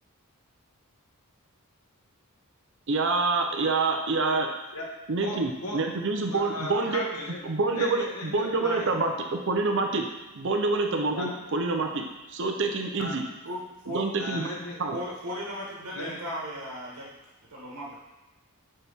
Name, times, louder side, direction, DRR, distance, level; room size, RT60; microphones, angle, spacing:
voice 1, 2.9-4.5 5.1-7.0 7.4-10.1 10.3-12.1 12.3-13.2 13.9-14.5 14.8-15.0, right 3 dB, 55° right, 3 dB, 0.6 m, -27 dB
voice 2, 4.7-6.0 6.3-7.5 7.7-8.9 11.1-11.3 13.0-13.2 14.2-14.8 15.9-16.2, left 1 dB, 90° left, -1 dB, 1.2 m, -36 dB
voice 3, 13.4-14.0 14.9-17.1 17.5-17.9, equal, 85° right, -5 dB, 1.4 m, -36 dB
6.3 x 4.3 x 3.5 m, 1.1 s
head